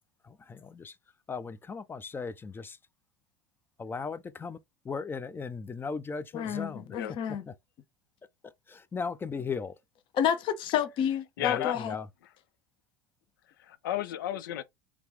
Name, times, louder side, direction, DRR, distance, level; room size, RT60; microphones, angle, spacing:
voice 1, 0.2-1.0 1.3-2.8 3.8-4.6 4.8-7.0 8.4-9.7 11.4-12.1, left 5 dB, 20° left, 0.4 m, -37 dB
voice 2, 6.3-7.4 10.2-11.9, left 9 dB, 50° left, 0.8 m, -29 dB
voice 3, 11.4-11.8 13.4-14.6, left 12 dB, 80° left, 0.5 m, -33 dB
3.4 x 2.4 x 3.1 m
hypercardioid pair, 90°, 11 cm